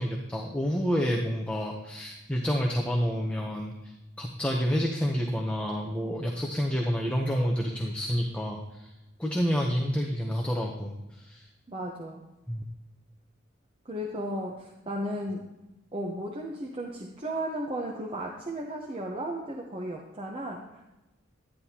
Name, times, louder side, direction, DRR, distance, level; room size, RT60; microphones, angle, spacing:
voice 1, 0.0-8.9 9.2-11.5 12.5-12.6, equal, 5° left, -1 dB, 0.7 m, -29 dB
voice 2, 11.7-12.2 13.8-15.4 15.9-20.9, right 1 dB, 25° right, -1 dB, 0.8 m, -35 dB
11.0 x 10.0 x 2.9 m, 0.98 s
head